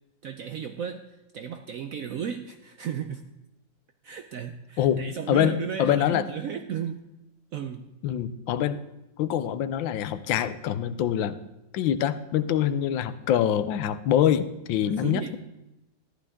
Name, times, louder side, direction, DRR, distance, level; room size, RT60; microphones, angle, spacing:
voice 1, 0.2-1.1 1.3-3.2 4.0-7.0 7.5-7.9 14.8-15.4, right 8 dB, 70° right, 7 dB, 0.8 m, -34 dB
voice 2, 4.8-6.3 8.0-8.8 9.2-11.4 11.7-15.4, left 10 dB, 90° left, 13 dB, 1.4 m, -25 dB
14.0 x 11.5 x 3.6 m, 0.93 s
omnidirectional pair, 2.1 m